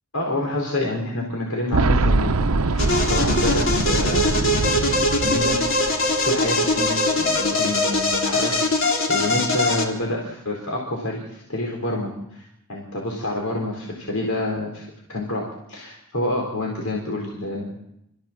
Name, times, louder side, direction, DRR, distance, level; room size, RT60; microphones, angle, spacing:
voice 1, 0.1-4.4 5.2-5.6 6.2-17.9, left 1 dB, 80° left, -1 dB, 4.5 m, -28 dB
Boom, 1.7-6.5 6.7-6.8 7.9-8.0, right 3 dB, 80° right, 0.8 m, -23 dB
sound 1, 2.8-9.9, left 2 dB, 60° left, 3.6 m, -22 dB
27.5 x 15.5 x 7.5 m, 0.81 s
head